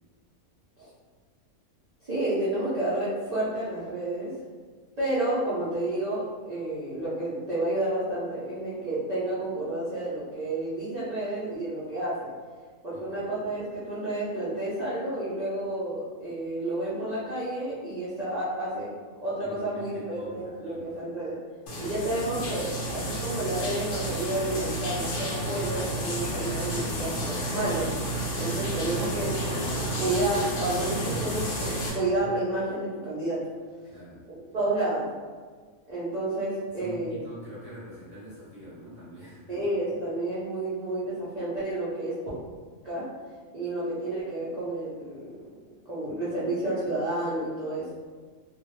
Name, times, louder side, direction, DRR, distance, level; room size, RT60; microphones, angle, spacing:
voice 1, 2.0-4.3 5.0-12.3 12.8-18.9 19.2-21.4 21.8-22.7 22.9-29.3 30.0-33.4 34.3-35.1 35.9-37.2 39.5-42.1 42.8-43.0 43.5-45.4 45.9-47.8, right 1 dB, 55° right, -10 dB, 0.4 m, -30 dB
voice 2, 12.9-13.2 19.4-20.8 33.8-34.2 34.6-34.7 36.8-39.5, equal, 30° left, -12 dB, 1.0 m, -44 dB
sound 1, 21.7-31.9, right 1 dB, 70° left, 0.5 m, -31 dB
2.4 x 2.0 x 3.0 m, 1.5 s
omnidirectional pair, 1.5 m